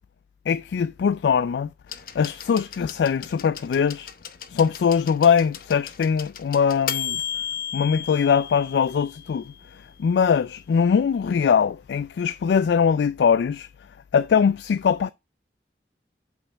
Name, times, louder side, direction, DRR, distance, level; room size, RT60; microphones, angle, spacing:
voice 1, 0.5-1.7 2.1-4.1 4.5-7.2 7.7-9.5 10.0-13.7 14.1-15.1, left 6 dB, 80° left, 0.3 m, -21 dB
sound 1, 1.9-9.7 10.8-10.9, left 9 dB, 55° left, 0.7 m, -35 dB
5.6 x 4.4 x 6.2 m
head